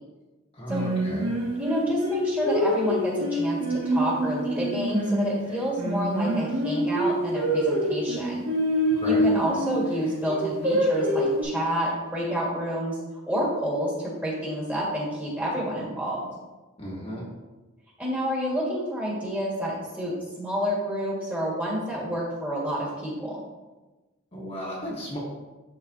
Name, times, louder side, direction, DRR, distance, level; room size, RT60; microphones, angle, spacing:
voice 1, 0.5-1.3 8.9-9.3 16.8-17.3 24.3-25.2, equal, 30° left, -5 dB, 1.3 m, -35 dB
Singing, 0.7-5.4 5.8-9.8 10.3-11.4, equal, 90° right, 2.2 m, -25 dB
voice 2, 1.6-8.4 9.0-13.0 13.3-16.3 18.0-23.4, equal, 10° right, -6 dB, 1.7 m, -29 dB
11.0 x 3.8 x 2.8 m, 1.2 s
head